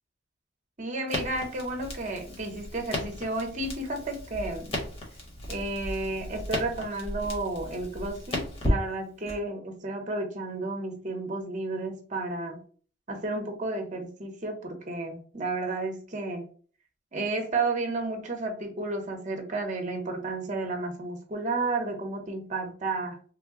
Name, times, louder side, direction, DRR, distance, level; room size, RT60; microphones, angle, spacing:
voice 1, 0.8-4.8 5.5-12.6 13.1-16.4 17.1-23.2, right 2 dB, 40° right, 3 dB, 0.8 m, -32 dB
Crackle, 1.1-9.4, equal, 30° left, 1.1 m, -35 dB
3.2 x 2.2 x 3.6 m, 0.43 s
head